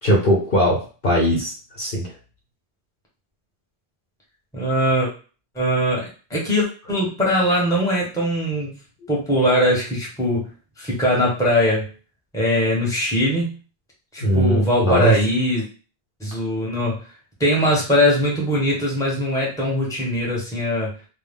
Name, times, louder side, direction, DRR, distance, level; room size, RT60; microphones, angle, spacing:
voice 1, 0.0-2.1 9.0-9.1 14.2-15.2, right 1 dB, 55° left, -2 dB, 0.9 m, -20 dB
voice 2, 4.5-5.1 5.5-6.0 6.3-8.7 9.1-10.5 10.8-11.8 12.3-13.5 14.1-15.6 16.2-17.0 17.4-20.9, equal, 5° left, -4 dB, 0.9 m, -21 dB
2.3 x 2.1 x 3.5 m, 0.36 s
omnidirectional pair, 1.1 m